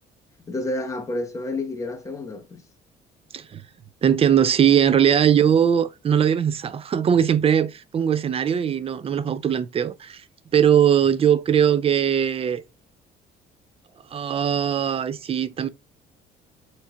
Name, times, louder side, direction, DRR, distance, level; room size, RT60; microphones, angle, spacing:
voice 1, 0.5-2.6, left 2 dB, 20° left, 1.1 m, -30 dB
voice 2, 4.0-10.2 10.5-12.6 14.1-15.7, right 8 dB, 35° right, 0.4 m, -20 dB
7.0 x 3.2 x 2.4 m
cardioid pair, 110°, 17 cm